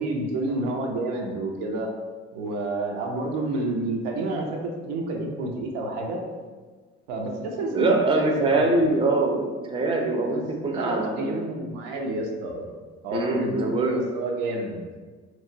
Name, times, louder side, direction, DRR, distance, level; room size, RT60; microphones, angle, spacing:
voice 1, 0.0-1.9 2.3-6.2 7.1-8.6 10.3-10.4 10.7-14.9, right 2 dB, 90° right, 1 dB, 0.5 m, -29 dB
voice 2, 7.7-11.4 13.1-14.0, right 2 dB, 20° right, 1 dB, 0.4 m, -23 dB
2.9 x 2.1 x 2.6 m, 1.4 s
supercardioid pair, 80°, 31 cm